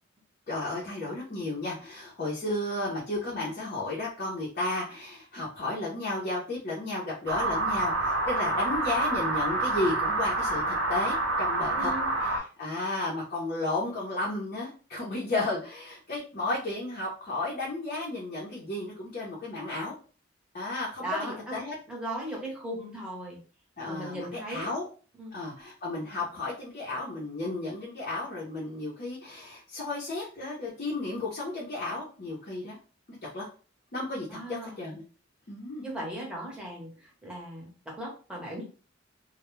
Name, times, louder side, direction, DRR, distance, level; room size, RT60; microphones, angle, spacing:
voice 1, 0.5-11.9 12.2-20.0 20.5-21.7 23.8-24.9 25.3-32.8 33.3-33.5 33.9-35.0 35.5-35.9, left 2 dB, 45° left, -4 dB, 0.6 m, -33 dB
sound 1, 7.3-12.4, right 2 dB, 85° right, 0.7 m, -28 dB
voice 2, 11.7-12.1 21.0-21.6 21.9-23.4 23.8-24.7 25.2-25.4 34.3-34.8 35.8-38.6, right 1 dB, 5° right, -3 dB, 0.8 m, -37 dB
2.2 x 2.1 x 3.0 m, 0.37 s
head